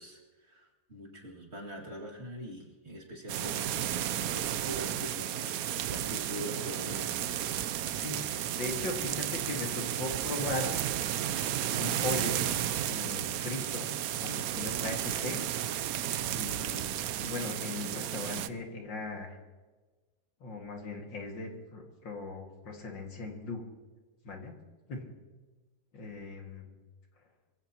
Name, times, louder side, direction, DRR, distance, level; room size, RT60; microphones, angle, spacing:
voice 1, 0.0-7.2, right 1 dB, 35° right, -1 dB, 2.6 m, -43 dB
sound 1, 3.3-18.5, right 11 dB, 70° right, 0.8 m, -33 dB
voice 2, 7.9-10.9 11.5-13.9 14.2-15.4 16.3-16.9 17.2-19.4 20.4-23.6 24.2-24.5 24.9-25.1 25.9-26.8, left 3 dB, 75° left, 1 dB, 2.8 m, -39 dB
25.0 x 15.5 x 3.0 m, 1.3 s
omnidirectional pair, 2.0 m